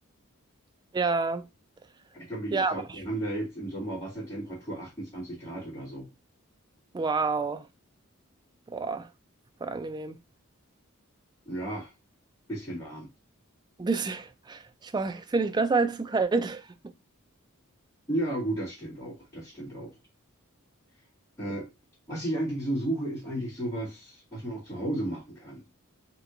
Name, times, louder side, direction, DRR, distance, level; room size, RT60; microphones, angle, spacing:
voice 1, 0.9-1.5 2.5-2.8 6.9-7.7 8.7-9.1 9.6-10.2 13.8-16.7, right 4 dB, 20° right, 0.3 m, -28 dB
voice 2, 2.1-6.1 11.5-11.9 12.5-13.1 18.1-19.9 21.4-21.7 22.1-25.6, right 1 dB, 15° left, 2.1 m, -33 dB
3.4 x 3.0 x 3.8 m
head